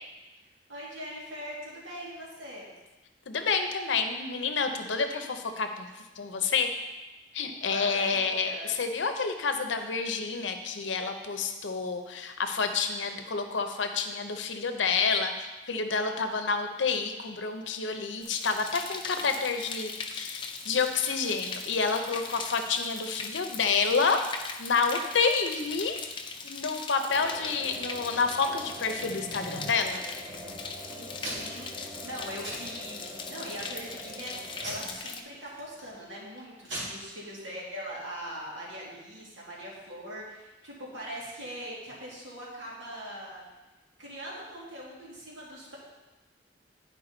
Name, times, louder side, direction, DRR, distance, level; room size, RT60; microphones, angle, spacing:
voice 1, 0.7-2.7 7.6-8.7 30.9-33.0 33.3-43.4 44.0-45.8, equal, 90° right, -5 dB, 2.5 m, -41 dB
voice 2, 3.3-5.9 6.2-6.7 7.3-8.5 8.8-24.2 24.6-26.0 26.4-30.0, left 5 dB, 80° left, 6 dB, 0.7 m, -29 dB
sound 1, 18.2-35.2, left 4 dB, 25° left, 0.6 m, -40 dB
sound 2, 27.1-34.9, equal, 20° right, 0.6 m, -45 dB
Packing tape duct tape / Tearing, 28.6-29.8 30.3-30.8 31.2-31.7 32.0-32.1 32.4-33.1 33.6-33.9 34.6-35.9 36.4-36.5 36.7-36.8, right 1 dB, 70° right, 2.3 m, -41 dB
10.5 x 4.8 x 3.9 m, 1.1 s
head